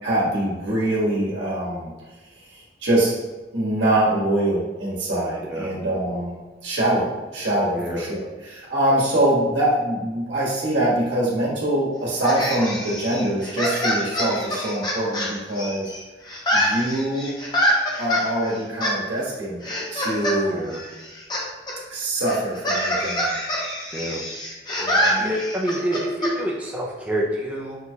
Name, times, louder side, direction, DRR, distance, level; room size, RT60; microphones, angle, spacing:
voice 1, 0.0-1.9 2.3-3.1 3.5-15.9 16.5-17.3 18.0-19.6 19.9-20.6 21.9-23.3 24.8-25.2, right 1 dB, 75° right, -6 dB, 1.4 m, -24 dB
voice 2, 7.7-8.1 20.5-20.8 23.9-24.2 25.1-27.8, right 1 dB, 10° right, -4 dB, 0.4 m, -27 dB
sound 1, 12.2-16.0 16.3-18.2 18.8-18.9 19.6-20.4 20.7-21.4 21.7-21.8 22.3-26.3, equal, 20° left, 0.7 m, -25 dB
5.9 x 2.3 x 2.7 m, 1.2 s
head